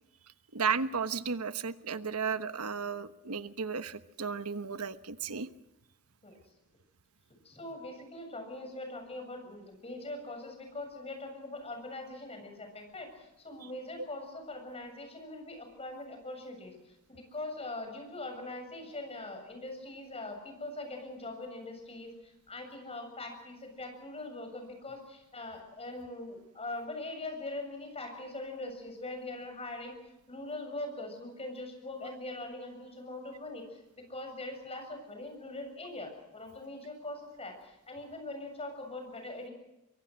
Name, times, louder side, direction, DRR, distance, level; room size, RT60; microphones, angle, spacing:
voice 1, 0.5-5.5, right 5 dB, 80° right, 11 dB, 1.2 m, -34 dB
voice 2, 7.4-29.9 30.3-33.8 34.1-39.5, left 2 dB, 30° left, 5 dB, 7.2 m, -42 dB
24.0 x 23.5 x 6.4 m, 0.94 s
head